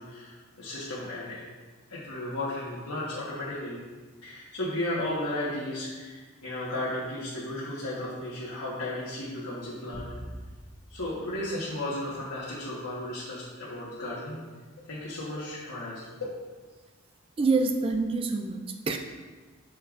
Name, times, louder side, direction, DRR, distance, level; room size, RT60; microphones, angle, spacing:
voice 1, 0.0-1.4 1.9-3.8 4.2-10.1 10.9-14.4 14.8-16.3, left 1 dB, 85° left, -8 dB, 1.3 m, -34 dB
sound 1, 9.9-12.5, equal, 40° left, 1.5 m, -45 dB
voice 2, 17.4-19.0, right 3 dB, 25° right, 5 dB, 0.3 m, -26 dB
6.7 x 6.4 x 2.5 m, 1.4 s
head